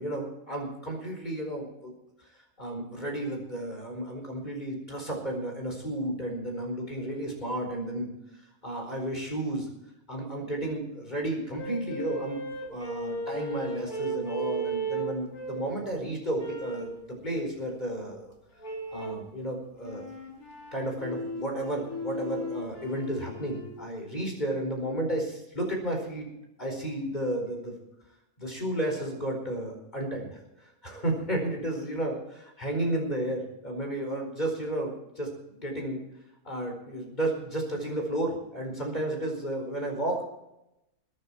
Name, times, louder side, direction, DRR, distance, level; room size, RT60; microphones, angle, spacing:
voice 1, 0.0-1.9 2.6-8.1 8.6-9.7 10.1-12.4 12.7-16.9 17.2-18.3 18.9-20.1 20.7-26.3 26.6-27.7 28.4-36.0 36.4-40.2, right 1 dB, 25° left, 1 dB, 4.8 m, -32 dB
sound 1, 11.6-15.8 16.4-17.0 18.6-19.3 19.8-23.8, right 2 dB, 65° left, 3.3 m, -36 dB
23.0 x 9.6 x 4.6 m, 0.87 s
omnidirectional pair, 1.7 m